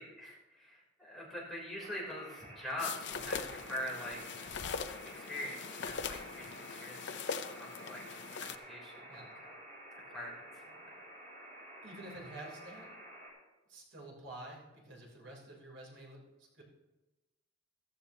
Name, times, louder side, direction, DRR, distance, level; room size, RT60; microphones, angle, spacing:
voice 1, 0.0-4.2 5.1-8.0 8.4-8.9 10.1-10.8, left 1 dB, ahead, -5 dB, 3.5 m, -43 dB
sound 1, 1.8-13.3, right 1 dB, 45° right, 2.8 m, -52 dB
sound 2, 2.8-8.6, left 6 dB, 60° left, 0.6 m, -41 dB
voice 2, 11.8-12.9 13.7-16.6, right 1 dB, 65° right, -1 dB, 3.6 m, -49 dB
14.5 x 14.5 x 2.9 m, 1.1 s
head